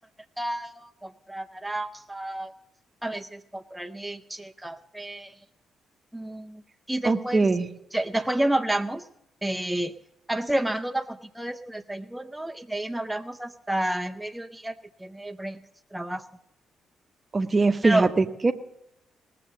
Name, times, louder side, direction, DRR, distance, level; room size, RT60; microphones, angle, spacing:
voice 1, 0.4-2.5 3.0-5.3 6.1-6.6 6.9-7.5 7.9-9.0 9.4-9.9 10.3-14.7 15.0-15.6 15.9-16.2 17.8-18.1, right 1 dB, 5° right, 6 dB, 0.6 m, -30 dB
voice 2, 7.0-7.7 17.3-18.5, right 3 dB, 35° right, 9 dB, 0.8 m, -22 dB
18.5 x 6.8 x 6.3 m, 0.83 s
hypercardioid pair, 45°, 0 cm